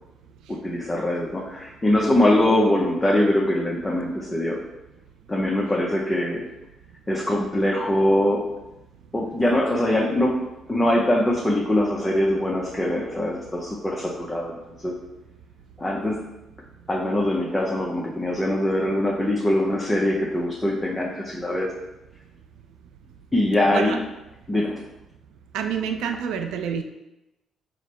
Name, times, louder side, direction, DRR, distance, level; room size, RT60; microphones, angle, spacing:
voice 1, 0.5-4.6 5.3-6.4 7.1-8.4 9.1-10.3 10.7-14.5 14.8-14.9 15.8-16.2 16.9-21.7 23.3-24.0 24.5-24.8, left 1 dB, 15° left, -3 dB, 0.5 m, -22 dB
voice 2, 25.5-26.8, right 7 dB, 85° right, 6 dB, 0.3 m, -27 dB
4.9 x 2.0 x 4.2 m, 0.97 s
cardioid pair, 90°, 0 cm